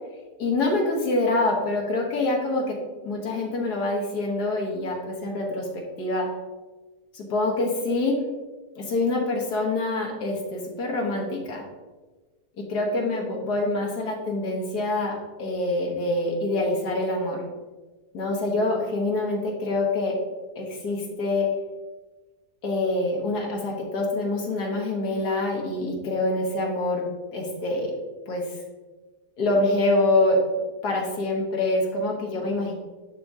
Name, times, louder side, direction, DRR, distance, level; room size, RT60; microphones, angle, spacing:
voice 1, 0.4-2.8 3.0-5.7 6.0-6.3 7.1-8.2 8.8-11.6 12.7-15.1 15.4-17.4 18.1-20.1 20.6-21.5 22.6-27.0 27.3-27.9 28.3-28.4 29.4-30.4 30.8-32.7, left 2 dB, 75° left, 0 dB, 1.7 m, -25 dB
10.5 x 3.6 x 2.7 m, 1.3 s
omnidirectional pair, 1.7 m